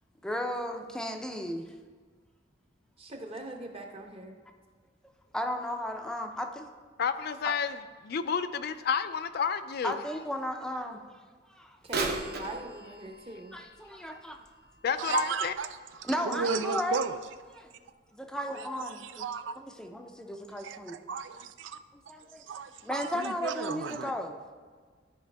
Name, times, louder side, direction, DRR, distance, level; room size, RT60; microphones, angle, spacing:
voice 1, 0.2-1.7 5.3-6.7 7.4-7.5 9.8-11.0 11.5-11.8 13.5-14.4 16.0-17.0 17.6-17.7 18.1-19.2 19.6-21.0 22.1-22.4 22.8-24.4, left 1 dB, 5° left, 4 dB, 0.5 m, -35 dB
voice 2, 3.0-4.4 11.8-13.6, right 2 dB, 30° right, 3 dB, 0.9 m, -42 dB
voice 3, 7.0-10.0 14.8-15.5, left 6 dB, 55° left, 11 dB, 0.4 m, -30 dB
Bird vocalization bird call bird song / Telephone, 11.8-15.7 16.2-16.3 17.1-17.2 17.9-18.0, right 3 dB, 60° right, 0.9 m, -38 dB
voice 4, 15.0-15.7 16.0-17.2 18.3-19.6 20.6-21.8 22.5-24.1, right 5 dB, 75° right, 10 dB, 0.4 m, -34 dB
12.5 x 5.0 x 3.4 m, 1.6 s
head